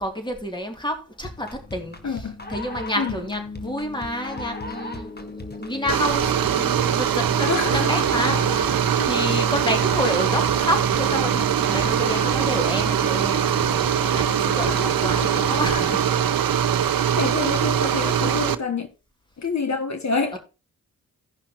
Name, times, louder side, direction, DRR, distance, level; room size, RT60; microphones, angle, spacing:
voice 1, 0.0-16.2 17.4-17.9 18.2-18.6 20.3-20.4, equal, 15° left, 2.6 m, -30 dB
sound 1, 1.2-16.2, left 2 dB, 30° left, 1.5 m, -36 dB
voice 2, 2.0-2.4 3.0-3.2 7.4-8.0 9.0-9.1 14.6-14.9 17.1-18.9 19.4-20.4, left 4 dB, 55° left, 1.1 m, -27 dB
sound 2, 5.9-18.6, right 9 dB, 80° right, 0.7 m, -22 dB
16.5 x 5.7 x 2.9 m
cardioid pair, 50°, 34 cm